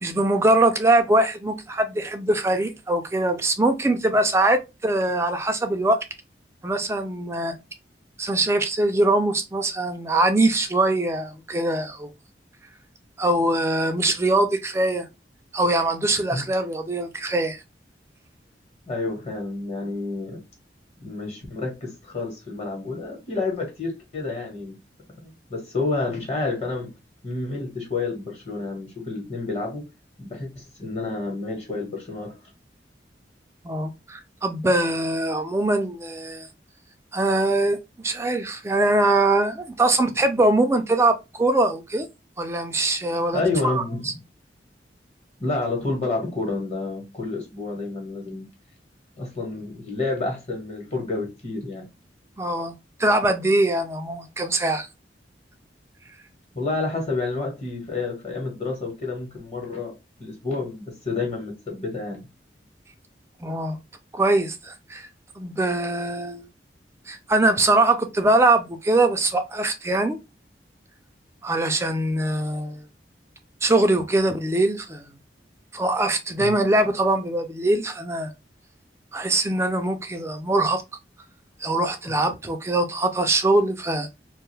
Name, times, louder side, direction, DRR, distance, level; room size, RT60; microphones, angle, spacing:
voice 1, 0.0-6.0 6.6-7.6 8.2-12.1 13.2-15.1 15.5-17.6 33.6-36.5 37.1-42.1 42.4-44.1 52.4-54.9 63.4-63.8 64.1-65.1 65.4-66.5 67.1-70.2 71.4-72.8 73.6-75.1 75.7-78.3 79.1-80.8 81.6-84.1, right 2 dB, 15° right, 0.3 m, -22 dB
voice 2, 18.9-20.4 21.0-24.7 25.2-26.9 27.2-29.9 30.2-32.4 43.3-44.0 45.4-48.4 49.1-51.9 56.5-62.2 76.4-76.6 82.1-82.2, left 3 dB, 35° left, 1.1 m, -29 dB
2.5 x 2.3 x 3.1 m
head